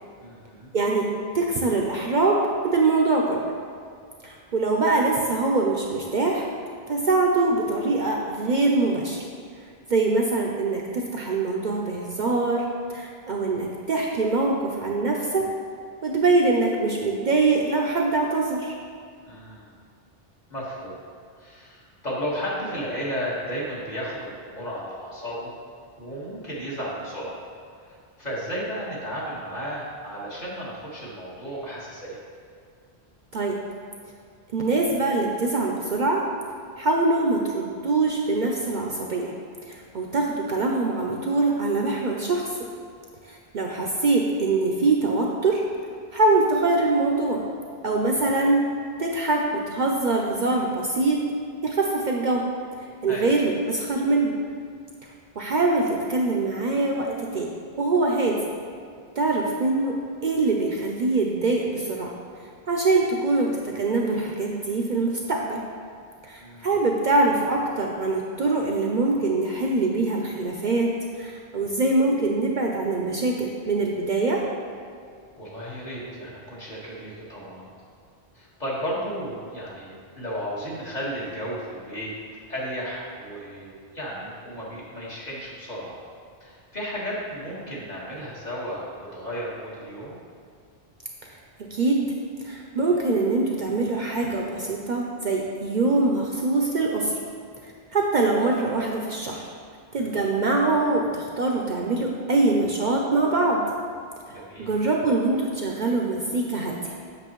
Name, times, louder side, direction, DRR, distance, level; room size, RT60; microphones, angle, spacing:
voice 1, 0.2-0.7 19.2-19.7 20.5-21.0 21.4-25.5 26.0-27.4 27.9-32.2 53.1-53.3 66.4-66.7 75.4-77.7 78.3-82.1 82.5-85.9 86.4-90.2 100.0-100.1 104.3-104.7, equal, 45° left, -7 dB, 1.7 m, -34 dB
voice 2, 0.7-1.1 1.3-3.4 4.2-6.5 6.9-9.2 9.9-15.5 16.0-18.7 33.3-33.6 34.5-36.2 36.8-39.3 39.7-42.5 43.2-45.6 46.1-47.4 47.8-48.6 49.0-51.2 51.6-52.4 53.0-54.3 55.4-57.5 57.8-58.4 59.2-60.0 60.2-62.1 62.7-65.6 66.2-74.4 91.3-91.4 91.7-92.1 92.4-97.2 97.6-99.5 99.9-103.6 104.3-107.0, right 3 dB, 55° right, 0 dB, 0.6 m, -23 dB
7.9 x 6.0 x 3.0 m, 2.2 s
omnidirectional pair, 1.1 m